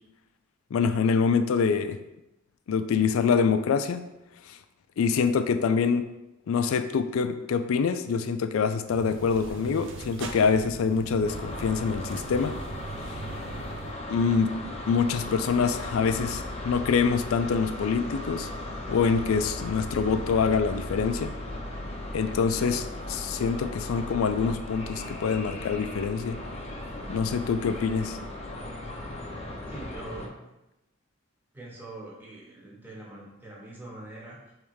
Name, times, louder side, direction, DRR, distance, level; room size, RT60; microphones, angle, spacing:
voice 1, 0.7-2.0 2.7-4.0 4.5-4.6 5.0-6.1 6.5-12.6 14.1-14.6 14.9-18.5 18.9-21.3 22.1-26.4 27.1-28.2, left 5 dB, 75° left, 10 dB, 0.3 m, -25 dB
sound 1, 8.9-13.9, right 3 dB, 60° right, 0.5 m, -40 dB
sound 2, 11.2-30.3, left 1 dB, 30° left, 0.6 m, -37 dB
voice 2, 29.7-30.5 31.5-34.5, right 2 dB, 10° right, -4 dB, 1.0 m, -43 dB
3.5 x 3.2 x 4.7 m, 0.94 s
head